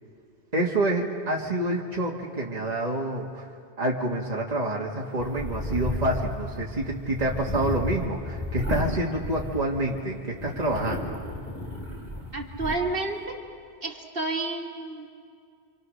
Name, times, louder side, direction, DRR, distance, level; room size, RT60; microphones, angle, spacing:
voice 1, 0.5-3.5 3.8-11.2, right 1 dB, 35° right, -2 dB, 1.8 m, -27 dB
sound 1, 5.2-10.0 10.4-12.8, left 1 dB, 10° left, 3.4 m, -33 dB
voice 2, 12.3-13.4 13.8-15.1, right 2 dB, 50° right, 0 dB, 2.4 m, -30 dB
27.0 x 26.5 x 6.5 m, 2.2 s
omnidirectional pair, 1.2 m